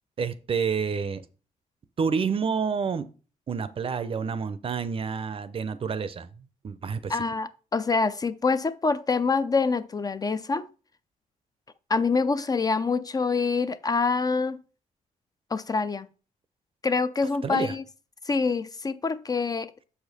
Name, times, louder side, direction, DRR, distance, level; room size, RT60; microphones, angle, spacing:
voice 1, 0.2-1.2 2.0-3.1 3.5-7.2 17.4-17.7, right 6 dB, 40° right, 0.6 m, -29 dB
voice 2, 7.1-10.7 11.9-14.6 15.5-16.1 16.8-17.8 18.3-19.7, left 4 dB, 25° left, 0.4 m, -26 dB
6.8 x 5.0 x 4.1 m
cardioid pair, 120°, 14 cm